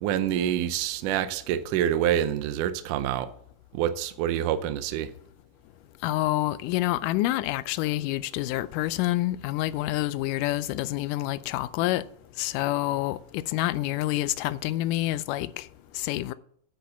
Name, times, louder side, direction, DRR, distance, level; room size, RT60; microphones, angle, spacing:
voice 1, 0.0-3.3 3.7-5.1, right 10 dB, 75° right, 2.1 m, -27 dB
voice 2, 6.0-12.0 12.4-15.7 16.0-16.3, left 16 dB, 80° left, 2.0 m, -27 dB
10.5 x 5.3 x 6.8 m
omnidirectional pair, 4.0 m